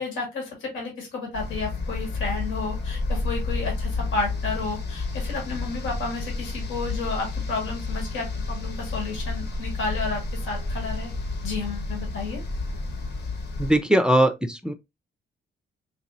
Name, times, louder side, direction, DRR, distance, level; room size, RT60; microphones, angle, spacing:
voice 1, 0.0-11.1 11.4-12.4, left 3 dB, 85° left, 1.6 m, -32 dB
sound 1, 1.3-13.8, left 3 dB, 60° left, 1.1 m, -30 dB
voice 2, 13.6-14.7, right 1 dB, 5° right, 0.4 m, -20 dB
3.6 x 2.9 x 2.5 m
cardioid pair, 90°, 20 cm